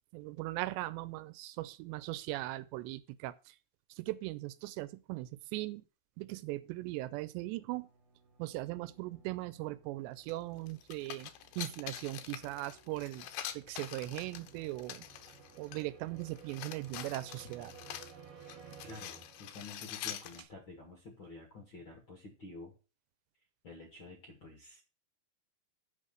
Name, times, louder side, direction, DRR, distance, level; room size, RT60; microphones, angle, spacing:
voice 1, 0.1-3.6 3.9-5.8 6.2-7.9 8.4-11.3 11.6-13.3 13.5-15.0 15.6-17.7, right 18 dB, 85° right, 2.7 m, -39 dB
sound 1, 7.2-19.9, right 6 dB, 50° right, 2.1 m, -57 dB
sound 2, 10.3-10.4 10.7-15.9 16.2-20.4, left 11 dB, 80° left, 2.7 m, -45 dB
voice 2, 18.8-22.7 23.6-24.8, left 3 dB, 50° left, 1.5 m, -50 dB
8.0 x 5.5 x 6.3 m
omnidirectional pair, 5.0 m